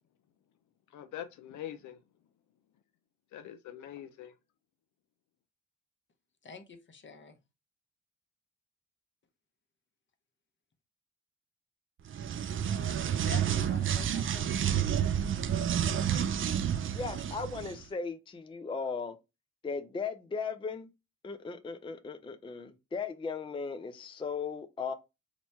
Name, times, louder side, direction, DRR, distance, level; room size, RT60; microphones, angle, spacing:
voice 1, 0.9-2.0 3.3-4.3, left 11 dB, 75° left, 0.5 m, -43 dB
voice 2, 6.4-7.4 13.1-14.5, left 5 dB, 40° left, 0.9 m, -47 dB
sound 1, 12.1-17.8, right 9 dB, 45° right, 0.4 m, -30 dB
voice 3, 16.9-19.2 19.6-20.9 21.2-24.9, left 5 dB, 15° left, 0.4 m, -37 dB
3.0 x 2.1 x 4.1 m
supercardioid pair, 60°, 30 cm